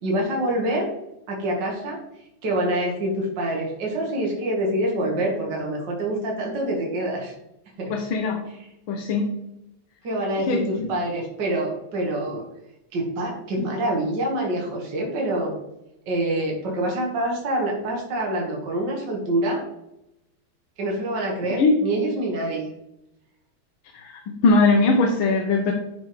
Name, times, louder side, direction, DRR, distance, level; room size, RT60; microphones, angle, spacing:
voice 1, 0.0-0.9 1.3-2.0 2.4-7.3 7.8-8.0 8.5-8.7 10.0-12.4 12.9-15.5 16.1-19.6 20.8-22.7, right 1 dB, 55° right, -1 dB, 2.2 m, -26 dB
voice 2, 7.9-8.4 8.9-9.3 10.5-10.9 21.6-21.8 23.9-25.7, left 3 dB, 75° left, 2 dB, 1.7 m, -20 dB
10.5 x 5.5 x 3.2 m, 0.87 s
omnidirectional pair, 2.4 m